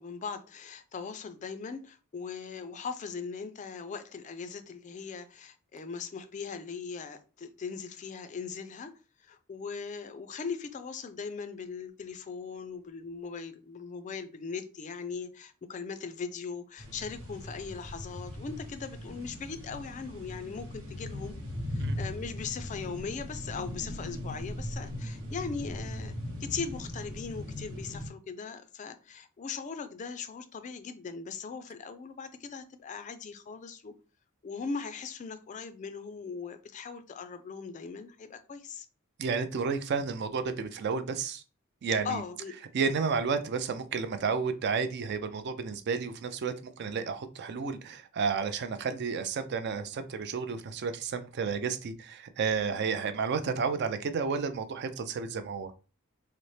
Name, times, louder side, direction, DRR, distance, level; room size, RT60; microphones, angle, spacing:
voice 1, 0.0-8.9 9.2-21.4 21.7-26.1 26.4-33.9 34.4-38.9 42.0-42.6, left 5 dB, 35° left, 0.3 m, -39 dB
sound 1, 16.8-28.1, left 1 dB, 90° right, 1.1 m, -39 dB
voice 2, 39.2-41.4 41.8-42.2 42.7-55.7, right 5 dB, 50° right, 0.4 m, -31 dB
4.0 x 2.0 x 3.2 m
head